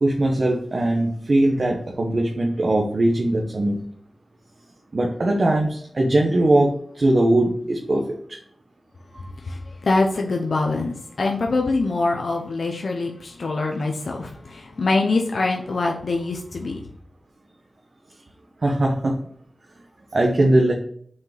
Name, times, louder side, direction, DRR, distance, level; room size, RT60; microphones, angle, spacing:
voice 1, 0.0-3.8 4.9-8.0 8.3-8.4 18.6-19.2 20.1-20.7, right 1 dB, 50° right, 0 dB, 1.2 m, -20 dB
voice 2, 9.5-16.8, left 3 dB, 70° left, 1 dB, 1.0 m, -24 dB
6.3 x 4.9 x 5.9 m, 0.62 s
wide cardioid pair, 75°, 0 cm